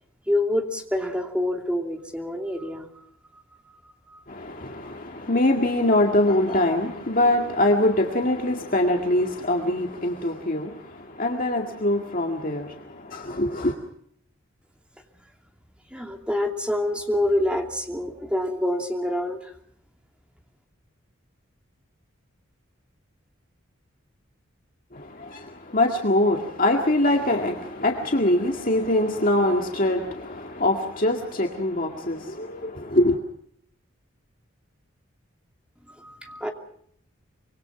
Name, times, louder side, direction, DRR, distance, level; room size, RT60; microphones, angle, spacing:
voice 1, 0.3-2.9 3.3-3.4 3.8-4.2 15.9-19.5 36.0-36.5, left 1 dB, 5° right, 3 dB, 2.7 m, -27 dB
voice 2, 4.3-13.8 24.9-33.2, left 1 dB, 40° left, 2 dB, 2.0 m, -23 dB
25.5 x 23.5 x 5.9 m, 0.67 s
head